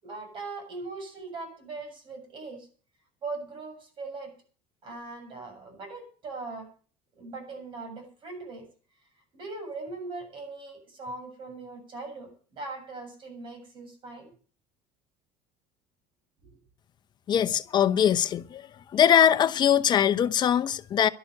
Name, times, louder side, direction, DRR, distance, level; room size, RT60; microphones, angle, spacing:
voice 1, 0.0-2.7 3.2-4.3 4.8-6.7 7.2-8.7 9.3-14.3, right 3 dB, 40° right, 7.2 m, -40 dB
voice 2, 17.3-18.7 18.9-21.1, left 9 dB, 35° left, 0.9 m, -22 dB
12.0 x 11.5 x 7.8 m
cardioid pair, 140°, 12 cm